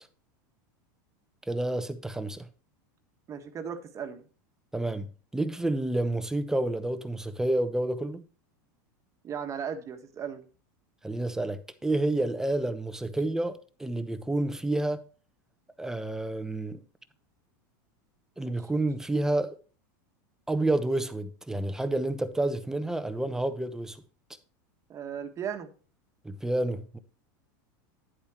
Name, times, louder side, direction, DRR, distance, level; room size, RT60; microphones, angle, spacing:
voice 1, 1.5-2.5 4.7-8.2 11.0-15.0 15.8-16.8 18.4-19.6 20.5-24.0 26.2-27.0, right 2 dB, 5° right, 0.8 m, -29 dB
voice 2, 3.3-4.2 9.2-10.4 24.9-25.7, right 7 dB, 30° right, 1.4 m, -36 dB
10.0 x 8.4 x 3.0 m
supercardioid pair, 125°, 11 cm